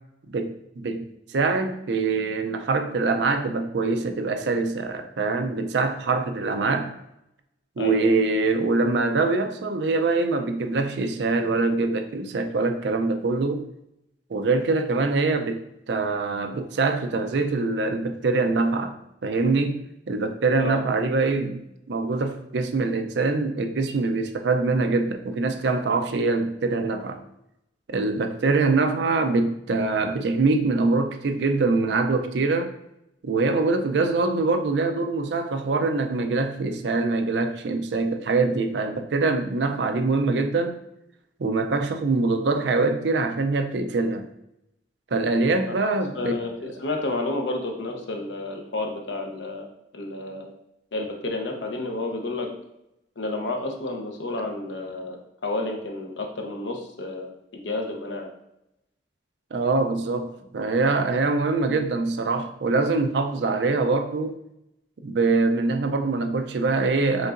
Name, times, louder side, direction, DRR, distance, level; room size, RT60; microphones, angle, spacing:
voice 1, 0.3-6.9 7.8-13.6 14.3-19.0 19.2-19.8 20.1-21.6 21.9-27.2 27.9-32.7 33.2-40.8 41.4-44.2 45.1-46.4 59.5-64.4 65.0-67.3, right 3 dB, 70° right, 7 dB, 0.5 m, -24 dB
voice 2, 7.8-8.1 20.6-20.8 45.8-49.7 49.9-50.5 50.9-52.5 53.2-58.3, left 2 dB, 85° left, 2 dB, 0.8 m, -31 dB
5.3 x 3.8 x 2.5 m, 0.83 s
head